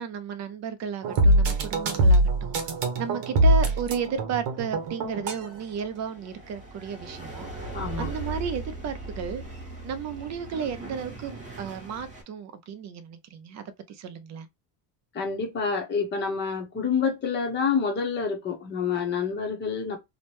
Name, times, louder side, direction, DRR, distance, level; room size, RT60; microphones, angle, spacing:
voice 1, 0.0-7.6 8.0-9.4 9.8-14.5, right 7 dB, 40° right, 0.4 m, -34 dB
sound 1, 1.0-5.5, right 1 dB, 60° right, 1.1 m, -22 dB
sound 2, 4.7-12.2, right 2 dB, 15° right, 1.0 m, -39 dB
voice 2, 7.7-8.1 15.1-20.0, left 5 dB, 20° left, 0.7 m, -28 dB
2.9 x 2.1 x 2.9 m
cardioid pair, 150°, 48 cm